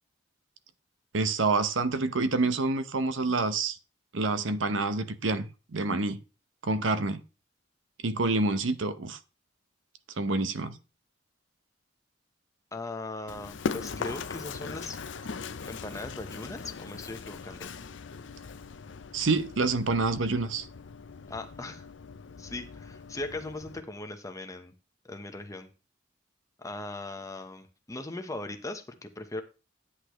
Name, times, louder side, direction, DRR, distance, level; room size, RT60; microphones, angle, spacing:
voice 1, 1.1-3.8 4.1-6.2 6.6-7.2 8.0-9.2 10.2-10.8 19.1-20.7, right 3 dB, 80° right, 0.8 m, -27 dB
voice 2, 12.7-15.0 15.7-17.7 21.3-21.9 22.4-24.7 25.1-25.7 26.6-29.4, left 2 dB, 15° left, 1.0 m, -39 dB
Run, 13.3-23.8, left 5 dB, 70° left, 0.6 m, -40 dB
9.9 x 8.4 x 3.1 m
head